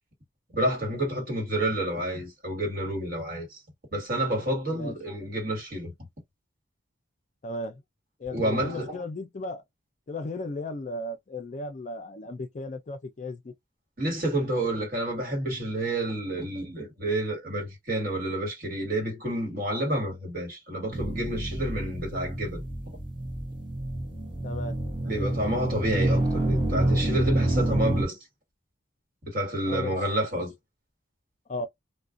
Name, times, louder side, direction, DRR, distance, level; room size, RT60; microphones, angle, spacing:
voice 1, 0.5-3.6 3.9-5.9 8.3-9.0 14.0-23.0 25.0-28.2 29.3-30.5, right 1 dB, 45° right, 1.5 m, -29 dB
voice 2, 7.4-7.8 8.2-9.6 10.1-13.5 24.4-24.8 29.7-30.0 30.3-30.4 31.5-31.7, left 2 dB, 40° left, 0.4 m, -35 dB
sound 1, 20.9-28.0, right 1 dB, 25° right, 0.7 m, -28 dB
2.4 x 2.1 x 2.4 m
head